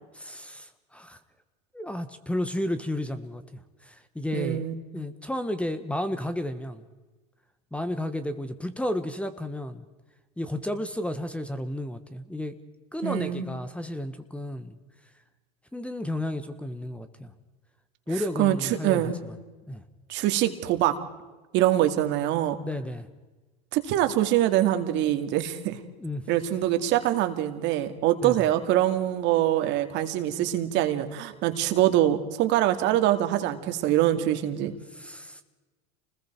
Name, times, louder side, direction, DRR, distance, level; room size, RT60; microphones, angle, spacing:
voice 1, 0.1-1.2 1.7-3.4 3.8-4.7 4.9-6.8 7.7-9.8 10.4-12.6 12.9-14.8 15.7-17.3 18.1-19.3 19.7-19.8 22.7-23.1 26.0-26.3 28.2-28.5 34.9-35.4, left 1 dB, 5° left, 11 dB, 1.4 m, -32 dB
voice 2, 4.3-4.8 13.0-13.5 18.4-18.6 18.8-19.1 20.1-21.0 21.5-22.6 23.7-25.8 26.3-34.7, right 13 dB, 60° right, 8 dB, 2.3 m, -24 dB
29.0 x 20.5 x 4.6 m, 1.2 s
supercardioid pair, 100°, 21 cm